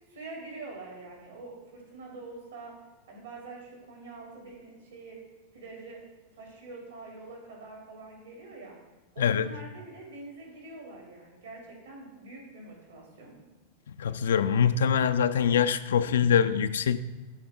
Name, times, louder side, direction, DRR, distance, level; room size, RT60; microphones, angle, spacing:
voice 1, 0.1-2.7 3.1-5.2 5.5-6.0 6.3-8.8 9.1-13.4, right 3 dB, 65° right, 2.7 m, -45 dB
voice 2, 9.2-9.5 14.0-17.0, left 7 dB, 65° left, 0.3 m, -24 dB
12.5 x 4.2 x 3.5 m
figure-of-eight pair, 90°, 0 cm